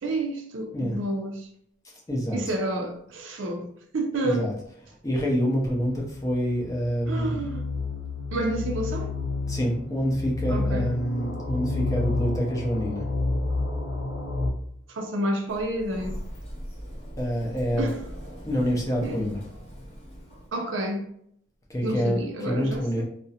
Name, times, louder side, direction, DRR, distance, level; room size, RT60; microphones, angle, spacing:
voice 1, 0.0-1.5 2.3-3.7 3.9-4.5 7.1-7.6 8.3-9.1 10.5-10.9 14.9-16.2 17.8-18.0 19.0-19.2 20.5-21.0 21.8-23.1, right 1 dB, 90° right, 0.5 m, -29 dB
voice 2, 2.1-2.4 4.2-4.5 5.0-7.4 9.5-13.1 17.2-17.9 18.5-19.4 21.7-23.1, equal, 20° left, 0.5 m, -26 dB
sound 1, 5.7-14.5, left 3 dB, 80° left, 0.4 m, -30 dB
Sliding door, 15.5-20.5, equal, 35° left, 0.9 m, -40 dB
2.4 x 2.1 x 2.7 m
head